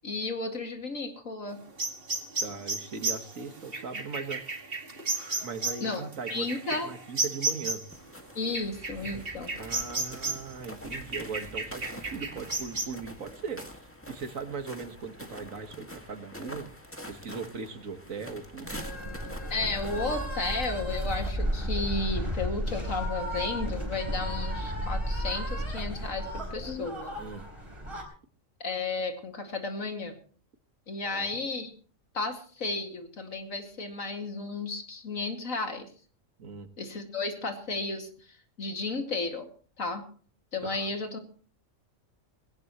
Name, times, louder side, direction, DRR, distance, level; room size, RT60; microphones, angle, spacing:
voice 1, 0.0-1.6 5.8-6.0 6.3-6.9 8.3-9.5 19.5-27.2 28.6-30.1 30.9-31.7 32.1-35.9 36.8-39.5 39.8-40.0 40.5-41.3, left 3 dB, 85° left, 4 dB, 2.7 m, -33 dB
sound 1, 1.8-8.0 8.5-10.5 10.9-12.9, right 3 dB, 45° right, 2.4 m, -33 dB
voice 2, 2.4-4.5 5.4-7.8 9.6-16.7 17.1-18.8 27.2-27.4 31.0-31.4 36.4-36.7 40.6-40.9, right 5 dB, 85° right, 7 dB, 2.0 m, -39 dB
sound 2, 7.9-21.4, left 1 dB, 10° left, 1.9 m, -46 dB
sound 3, 18.6-28.0, equal, 20° right, 4.1 m, -33 dB
20.0 x 18.0 x 3.1 m, 0.42 s
omnidirectional pair, 1.4 m